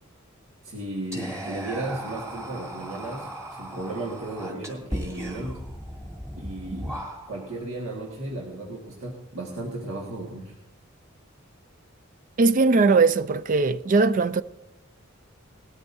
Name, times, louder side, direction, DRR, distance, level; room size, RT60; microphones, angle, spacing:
voice 1, 0.6-5.7 6.4-7.0 7.3-10.6, right 2 dB, 70° right, 1.8 m, -35 dB
Whispering, 1.1-7.6, equal, 15° right, 2.5 m, -36 dB
voice 2, 12.4-14.4, right 4 dB, 40° right, 0.4 m, -20 dB
19.5 x 13.5 x 2.7 m
head